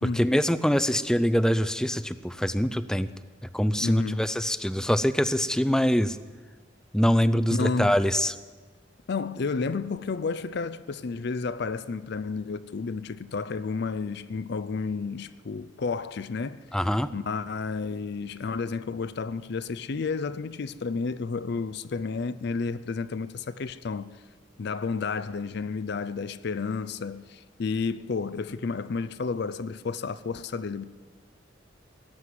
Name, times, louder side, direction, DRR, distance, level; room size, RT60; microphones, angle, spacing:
voice 1, 0.0-3.1 3.4-6.2 6.9-8.3 16.7-17.1, equal, 5° left, 0.4 m, -24 dB
voice 2, 3.8-4.2 7.5-8.0 9.1-16.6 17.1-24.1 24.6-30.8, left 4 dB, 60° left, 0.5 m, -31 dB
17.5 x 7.7 x 9.7 m
head